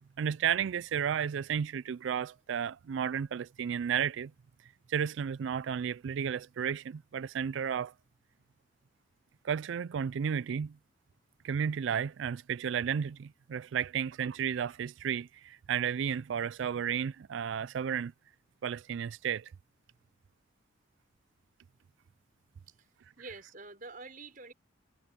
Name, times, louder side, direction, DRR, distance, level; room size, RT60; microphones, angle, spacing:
voice 1, 0.2-4.3 4.9-7.9 9.4-10.8 11.4-18.1 18.6-19.5, right 8 dB, 70° right, 0.3 m, -33 dB
voice 2, 23.2-24.5, right 3 dB, 45° right, 5.7 m, -47 dB
head